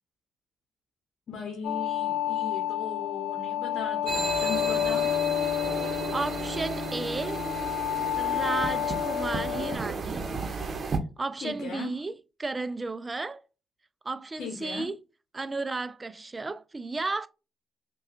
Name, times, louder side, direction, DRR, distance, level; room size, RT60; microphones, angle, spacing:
voice 1, 1.3-5.1 11.4-11.9 14.4-14.8, left 5 dB, 65° left, 0.9 m, -37 dB
sound 1, 1.6-9.8, left 11 dB, 80° left, 0.4 m, -30 dB
sound 2, 4.1-11.0, right 4 dB, 50° right, 0.8 m, -33 dB
voice 2, 6.1-7.4 8.2-10.3 11.2-13.4 14.0-15.0 15.3-17.3, right 3 dB, 30° right, 0.4 m, -33 dB
5.4 x 2.3 x 2.4 m
hypercardioid pair, 50°, 0 cm